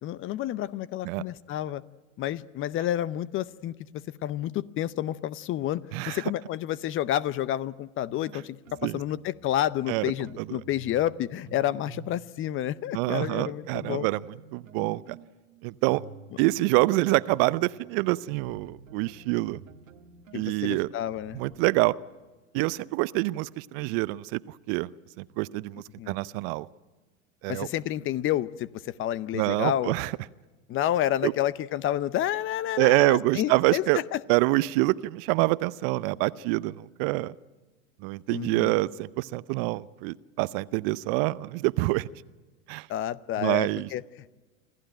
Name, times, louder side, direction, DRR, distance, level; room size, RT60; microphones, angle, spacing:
voice 1, 0.0-1.8 2.2-3.7 4.2-14.1 20.3-21.4 26.0-26.2 27.5-29.9 30.7-34.2 38.3-38.7 42.9-44.0, left 12 dB, 30° left, 19 dB, 0.7 m, -29 dB
voice 2, 5.9-6.2 8.8-9.0 9.9-10.1 10.4-10.6 12.9-14.2 14.5-15.2 15.6-16.0 16.4-19.6 20.3-20.9 21.3-22.0 22.5-24.9 25.2-26.7 27.4-27.7 29.3-30.1 31.2-31.3 32.8-34.0 34.3-37.3 38.0-42.1 42.7-42.9 43.4-43.9, right 21 dB, 45° right, 18 dB, 0.7 m, -26 dB
sound 1, 8.1-12.1 12.5-22.0, right 5 dB, 90° right, 1.5 m, -51 dB
27.0 x 14.5 x 9.0 m, 1.2 s
hypercardioid pair, 95°, 39 cm